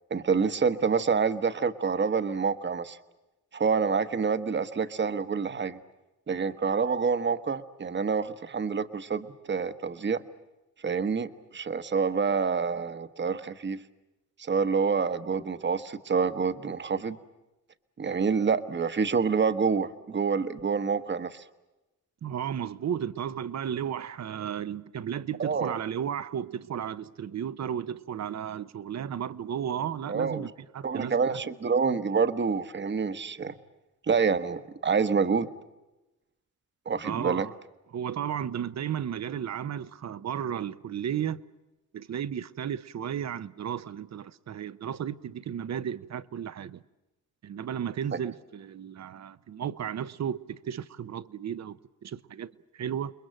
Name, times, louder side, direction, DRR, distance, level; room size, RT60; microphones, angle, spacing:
voice 1, 0.1-3.0 3.5-5.8 6.3-10.2 10.8-13.8 14.4-17.2 18.0-21.4 25.4-25.8 30.1-30.5 30.8-33.5 34.1-35.5 36.9-37.5, right 5 dB, 35° right, 1.2 m, -27 dB
voice 2, 22.2-31.4 37.0-37.5 37.9-41.4 41.9-46.8 47.4-53.1, right 9 dB, 60° right, 0.8 m, -34 dB
29.0 x 21.5 x 7.7 m
cardioid pair, 105°, 31 cm